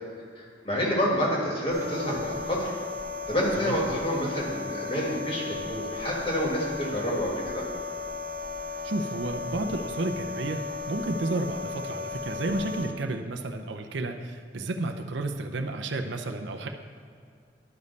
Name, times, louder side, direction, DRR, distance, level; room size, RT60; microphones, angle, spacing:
voice 1, 0.4-2.7 3.3-7.6, equal, 30° left, -4 dB, 1.8 m, -28 dB
sound 1, 1.7-12.9, left 4 dB, 50° right, 0.8 m, -36 dB
voice 2, 8.8-16.7, right 2 dB, 80° right, 5 dB, 0.6 m, -31 dB
12.0 x 5.3 x 4.0 m, 2.3 s
head